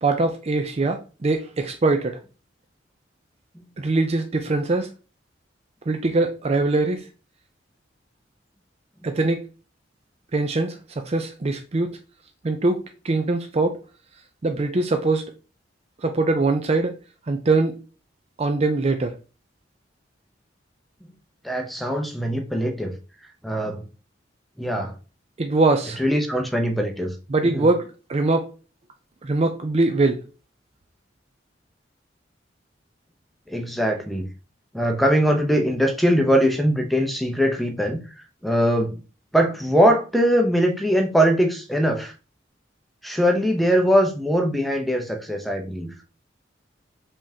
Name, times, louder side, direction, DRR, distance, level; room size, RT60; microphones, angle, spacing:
voice 1, 0.0-2.2 3.8-4.9 5.9-7.0 9.0-9.4 10.3-10.8 11.0-12.0 12.4-13.8 14.4-15.3 16.0-16.9 17.3-17.7 18.4-19.1 25.4-26.0 27.3-28.5 29.2-30.2, right 3 dB, 35° right, 0.5 m, -22 dB
voice 2, 21.4-22.9 23.4-23.8 24.6-24.9 26.0-27.1 27.4-27.7 33.5-34.3 34.7-38.0 38.4-39.0 39.3-42.1 43.0-45.9, equal, ahead, 0.7 m, -21 dB
5.2 x 3.6 x 2.8 m
head